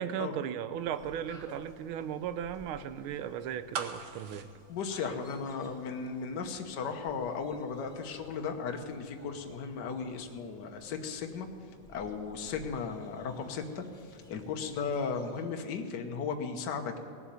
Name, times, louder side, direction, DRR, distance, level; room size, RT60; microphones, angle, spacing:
voice 1, 0.0-4.5, right 9 dB, 85° right, 12 dB, 1.5 m, -36 dB
sound 1, 0.7-15.6, left 1 dB, ahead, 1.8 m, -57 dB
sound 2, 3.7-5.8 6.1-6.2, right 6 dB, 60° right, 1.4 m, -40 dB
voice 2, 4.7-11.5 11.9-13.8 14.3-17.0, left 5 dB, 60° left, 5 dB, 1.6 m, -36 dB
18.5 x 7.2 x 9.3 m, 2.5 s
omnidirectional pair, 2.2 m